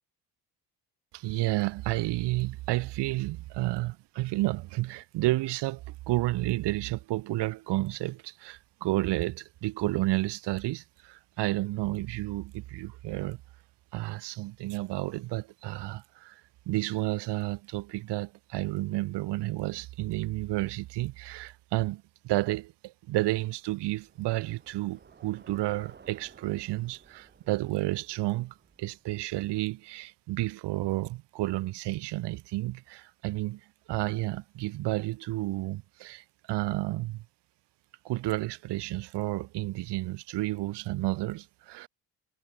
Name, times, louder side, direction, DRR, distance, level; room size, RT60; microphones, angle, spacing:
voice 1, 1.1-13.4 13.9-16.4 16.7-33.6 33.9-37.2 38.0-41.9, right 18 dB, 75° right, 0.7 m, -31 dB
Bicycle, 23.5-29.9, right 5 dB, 25° right, 1.7 m, -57 dB
cardioid pair, 120°, 42 cm